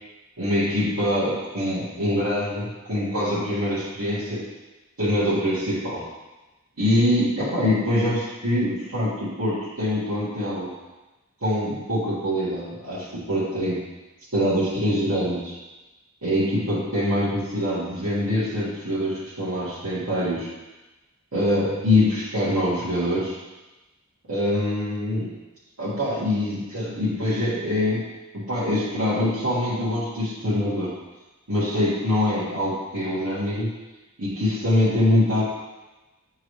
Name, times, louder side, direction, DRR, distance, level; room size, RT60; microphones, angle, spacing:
voice 1, 0.4-4.5 5.0-6.1 6.8-10.7 11.4-13.8 14.3-15.6 16.2-20.5 21.3-23.4 24.3-25.3 25.8-28.1 28.3-30.9 31.5-33.7 34.2-35.4, left 1 dB, 80° right, -12 dB, 1.8 m, -24 dB
9.3 x 3.8 x 3.2 m, 1.1 s
head